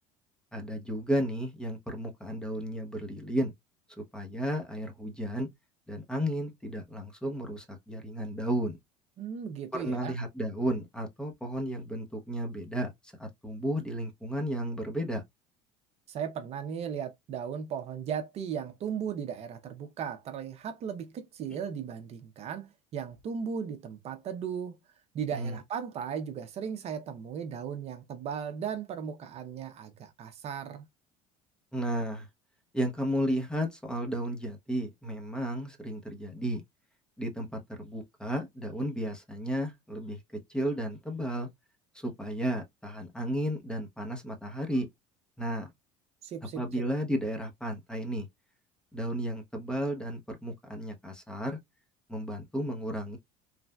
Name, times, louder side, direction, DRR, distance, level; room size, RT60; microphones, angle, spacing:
voice 1, 0.5-3.5 4.1-5.5 5.9-8.8 9.7-12.9 13.2-15.2 25.3-25.6 31.7-32.3 32.7-36.6 37.2-40.2 40.5-41.5 41.9-44.9 45.4-45.7 46.6-48.3 48.9-51.6 52.1-53.2, equal, 5° left, 0.8 m, -33 dB
voice 2, 9.2-10.2 16.1-24.8 25.1-30.9 46.2-46.8, right 7 dB, 45° right, 0.6 m, -36 dB
3.2 x 2.5 x 2.2 m
supercardioid pair, 105°, 15 cm